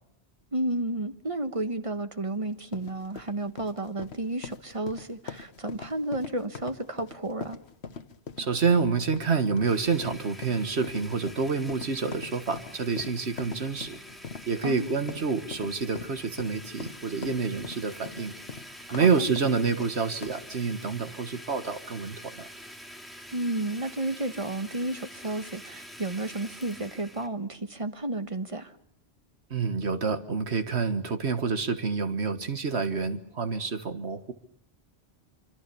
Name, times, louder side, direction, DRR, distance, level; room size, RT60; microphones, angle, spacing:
voice 1, 0.5-7.6 14.6-14.9 18.9-19.3 23.3-28.7, right 2 dB, 30° right, 9 dB, 1.3 m, -32 dB
sound 1, 2.5-20.6, left 5 dB, 75° left, 1.5 m, -43 dB
voice 2, 8.4-14.0 14.5-18.3 18.9-22.5 29.5-34.3, right 5 dB, 75° right, 9 dB, 1.8 m, -28 dB
Domestic sounds home sounds, 9.6-27.3, equal, ahead, 2.4 m, -46 dB
25.5 x 25.0 x 6.9 m, 0.68 s
omnidirectional pair, 1.1 m